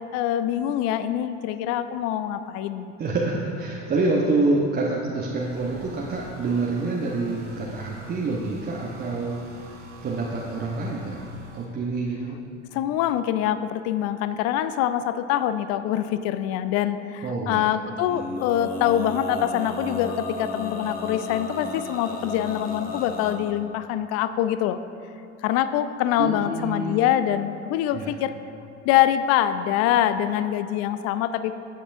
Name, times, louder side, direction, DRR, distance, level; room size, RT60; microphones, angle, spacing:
voice 1, 0.1-2.9 12.7-24.8 25.4-28.3 28.8-31.5, left 11 dB, 40° left, 12 dB, 0.5 m, -24 dB
voice 2, 3.0-11.2 11.5-12.4 17.2-17.6 26.2-27.0 27.9-28.1, right 3 dB, 25° right, -3 dB, 1.0 m, -27 dB
sound 1, 5.2-11.6, right 4 dB, 65° right, 1.7 m, -45 dB
Male singing, 18.0-23.4, left 2 dB, 25° left, 1.2 m, -33 dB
13.5 x 8.4 x 2.6 m, 2.7 s
figure-of-eight pair, 65°, 37 cm